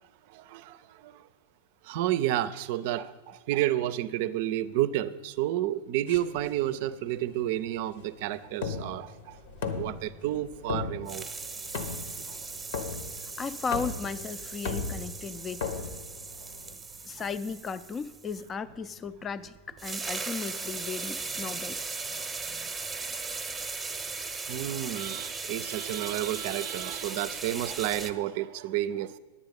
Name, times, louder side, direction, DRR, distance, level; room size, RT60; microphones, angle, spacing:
voice 1, 0.3-1.2 1.8-9.4 9.7-11.3 12.1-12.5 17.2-17.3 21.4-21.6 22.0-22.7 23.2-29.2, right 13 dB, 60° right, 15 dB, 0.5 m, -31 dB
sound 1, 6.1-16.7, left 5 dB, 70° left, 1.1 m, -38 dB
sound 2, 9.5-10.8 11.1-18.5 19.5-19.6 19.8-28.1, right 4 dB, 10° right, 0.8 m, -38 dB
voice 2, 13.4-15.7 17.1-21.8, left 5 dB, 25° left, 14 dB, 0.5 m, -35 dB
10.5 x 8.5 x 5.3 m, 1.2 s
hypercardioid pair, 105°, 0 cm